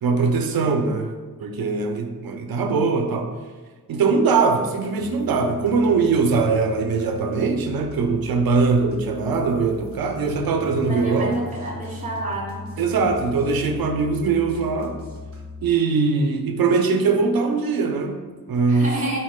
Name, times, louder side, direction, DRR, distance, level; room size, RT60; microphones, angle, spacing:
voice 1, 0.0-1.1 1.4-3.3 3.9-11.4 12.8-15.0 15.6-18.9, right 4 dB, 80° right, 4 dB, 0.6 m, -21 dB
sound 1, 5.0-15.7, left 2 dB, 40° right, 1.2 m, -39 dB
voice 2, 10.7-12.7 18.7-19.2, right 1 dB, 20° right, -3 dB, 1.2 m, -30 dB
4.3 x 3.1 x 3.6 m, 1.4 s
wide cardioid pair, 80°, 35 cm